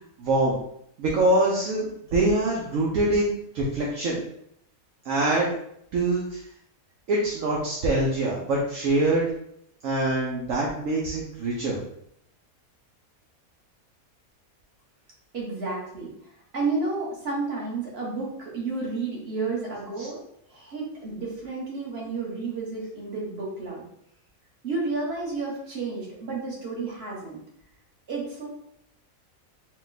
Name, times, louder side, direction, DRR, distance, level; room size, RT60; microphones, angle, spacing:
voice 1, 0.2-0.6 1.0-4.2 5.0-5.5 5.9-6.4 7.1-9.2 9.8-11.8 20.0-20.1, right 2 dB, 70° right, -3 dB, 1.1 m, -24 dB
voice 2, 15.3-16.1 16.5-20.2 20.5-23.8 24.6-27.4 28.1-28.5, right 3 dB, 45° right, -4 dB, 1.5 m, -31 dB
4.3 x 2.3 x 4.0 m, 0.74 s
omnidirectional pair, 1.5 m